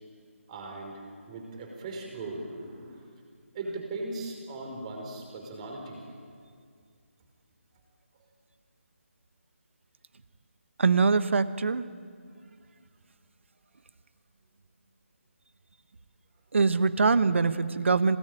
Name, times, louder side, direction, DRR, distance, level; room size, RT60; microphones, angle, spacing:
voice 1, 0.5-3.0 3.5-6.1, right 2 dB, 30° right, 2 dB, 5.0 m, -38 dB
voice 2, 10.8-11.8 16.5-18.2, right 4 dB, 60° right, 13 dB, 1.2 m, -23 dB
27.0 x 19.0 x 9.1 m, 2.2 s
figure-of-eight pair, 150°, 8 cm